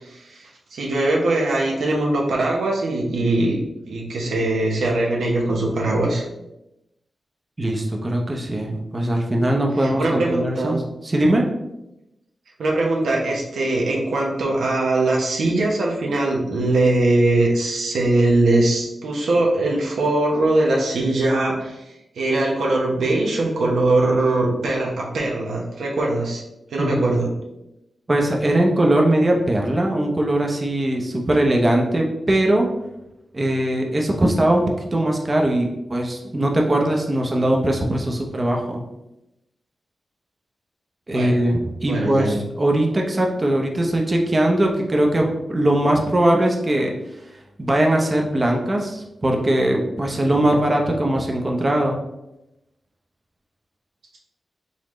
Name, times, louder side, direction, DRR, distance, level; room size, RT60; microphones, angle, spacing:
voice 1, 0.0-3.6 3.9-6.2 9.8-10.8 12.6-21.8 22.1-26.4 26.7-27.3 41.1-41.4 41.9-42.4, right 2 dB, 90° right, -1 dB, 0.9 m, -21 dB
voice 2, 7.6-11.5 26.8-27.0 28.1-32.7 33.3-38.8 41.1-46.9 47.6-52.0, right 1 dB, 30° right, 1 dB, 0.7 m, -20 dB
4.0 x 3.7 x 3.1 m, 0.90 s
cardioid pair, 70°, 0 cm